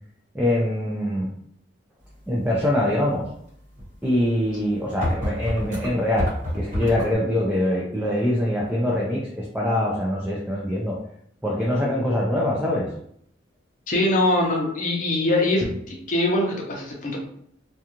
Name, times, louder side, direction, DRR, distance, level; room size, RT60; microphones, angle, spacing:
voice 1, 0.3-1.3 2.3-3.2 4.0-6.3 6.5-11.0 11.4-12.9, left 1 dB, 5° right, -5 dB, 0.3 m, -23 dB
sound 1, 3.8-3.9 4.5-4.6 5.0-7.2, equal, 40° right, 1.1 m, -27 dB
voice 2, 13.9-17.2, left 1 dB, 45° left, -1 dB, 0.6 m, -23 dB
2.4 x 2.3 x 2.8 m, 0.70 s
head